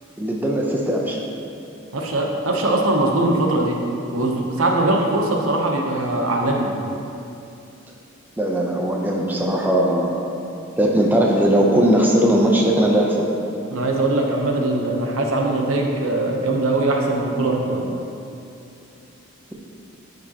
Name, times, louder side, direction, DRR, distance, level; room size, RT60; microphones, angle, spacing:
voice 1, 0.2-1.2 8.4-10.3 10.8-13.3, right 1 dB, 10° right, -2 dB, 0.6 m, -19 dB
voice 2, 1.9-3.8 4.1-6.7 13.7-17.9, right 2 dB, 80° right, 0 dB, 0.9 m, -21 dB
11.5 x 5.2 x 2.9 m, 2.7 s
head